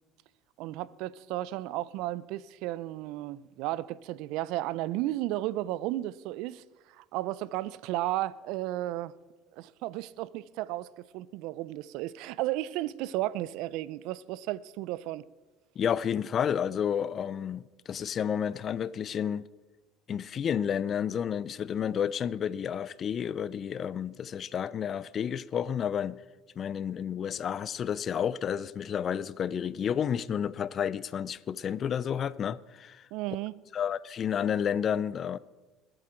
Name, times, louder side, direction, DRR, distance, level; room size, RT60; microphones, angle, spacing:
voice 1, 0.6-9.1 9.5-15.2 33.1-33.6, right 15 dB, 70° right, 0.5 m, -34 dB
voice 2, 15.8-19.4 20.1-26.2 26.6-33.1 33.7-35.4, left 8 dB, 45° left, 0.5 m, -31 dB
22.0 x 7.8 x 4.5 m
hypercardioid pair, 70°, 0 cm